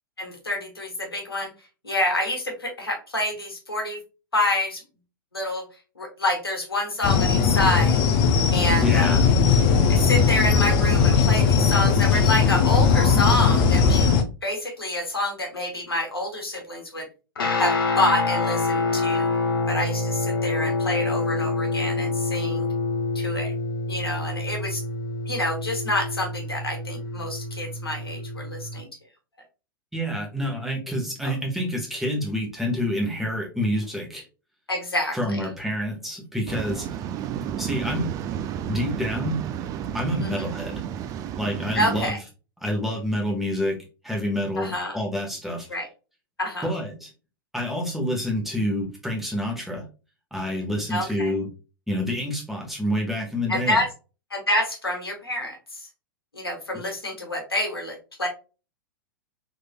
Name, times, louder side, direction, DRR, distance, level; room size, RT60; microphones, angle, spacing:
voice 1, 0.2-1.5 1.8-4.0 4.3-4.8 5.3-5.6 6.0-8.0 8.5-9.3 9.9-14.1 14.4-17.1 17.6-19.3 19.7-22.7 23.1-23.5 23.9-24.8 25.3-28.9 31.2-31.3 34.7-35.4 40.2-40.4 41.7-42.2 44.6-45.0 45.7-45.9 46.4-46.7 50.9-51.3 53.5-53.9 54.3-55.6 56.3-58.3, left 1 dB, 90° left, 2 dB, 1.3 m, -27 dB
sound 1, 7.0-14.2, left 6 dB, 40° left, 0.6 m, -19 dB
voice 2, 8.8-9.2 29.9-34.2 35.1-36.9 37.6-38.1 38.7-39.4 39.9-40.8 41.3-42.2 42.6-43.8 44.0-45.7 46.6-47.1 47.5-49.8 50.3-51.5 51.9-53.8, equal, ahead, -1 dB, 1.2 m, -27 dB
Guitar, 17.4-28.8, left 3 dB, 75° left, 0.9 m, -27 dB
Waves surf, 36.5-42.1, right 9 dB, 30° right, 0.3 m, -32 dB
3.7 x 3.1 x 2.2 m, 0.32 s
figure-of-eight pair, 100°, 12 cm